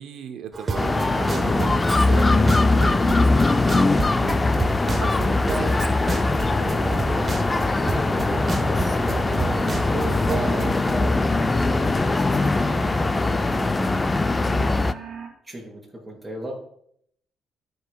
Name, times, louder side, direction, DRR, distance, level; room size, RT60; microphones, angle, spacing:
voice 1, 0.0-3.6 4.2-6.4, right 8 dB, 80° right, 7 dB, 0.5 m, -38 dB
sound 1, 0.5-10.9, right 3 dB, 35° right, 0.7 m, -31 dB
sound 2, 0.7-14.9, left 3 dB, 25° left, 0.3 m, -21 dB
voice 2, 6.3-7.1 7.4-13.9 15.0-15.1 15.4-16.5, equal, 15° right, -1 dB, 3.1 m, -37 dB
sound 3, 6.5-15.3, right 3 dB, 60° right, 1.5 m, -37 dB
13.0 x 5.3 x 2.2 m, 0.68 s
cardioid pair, 90°, 0 cm